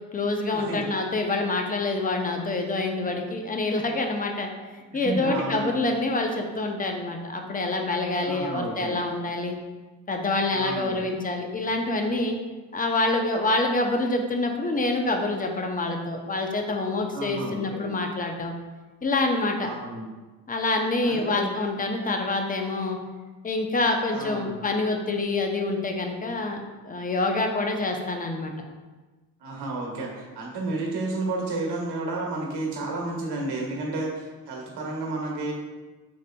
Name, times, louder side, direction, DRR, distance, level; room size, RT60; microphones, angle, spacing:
voice 1, 0.1-4.5 4.9-9.5 10.1-12.4 12.7-18.5 19.0-19.7 20.5-23.0 23.4-28.5, left 2 dB, 20° left, 3 dB, 0.6 m, -26 dB
voice 2, 5.0-5.8 8.2-9.0 10.5-11.0 17.1-17.9 19.6-20.0 21.1-21.5 24.1-24.6 29.4-35.5, right 2 dB, 75° right, -1 dB, 1.2 m, -31 dB
5.1 x 3.8 x 2.2 m, 1.3 s
cardioid pair, 85°, 40 cm